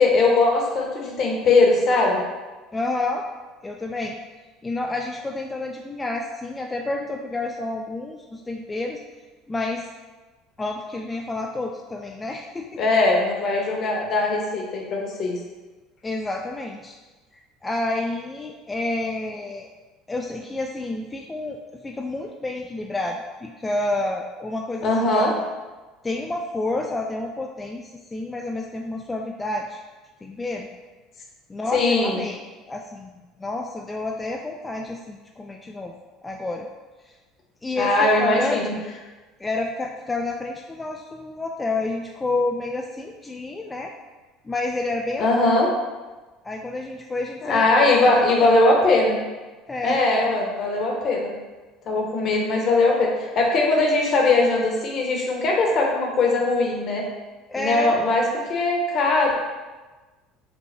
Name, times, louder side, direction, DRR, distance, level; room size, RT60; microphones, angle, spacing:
voice 1, 0.0-2.2 12.8-15.3 24.8-25.3 31.7-32.2 37.8-38.7 45.2-45.7 47.4-49.2 49.8-51.3 51.9-57.0 57.6-59.4, left 2 dB, 50° left, 0 dB, 0.9 m, -20 dB
voice 2, 2.7-3.2 3.6-4.2 4.6-9.0 9.5-9.9 10.6-12.8 16.0-17.0 17.3-19.7 20.1-21.6 21.8-25.4 26.0-29.8 30.2-30.7 31.5-32.4 32.7-35.9 36.2-36.7 37.0-37.1 37.6-38.8 39.4-43.9 44.4-45.5 46.4-48.6 49.7-50.0 57.5-58.0, left 2 dB, 20° left, 2 dB, 0.3 m, -29 dB
5.3 x 2.1 x 3.2 m, 1.2 s
hypercardioid pair, 70°, 0 cm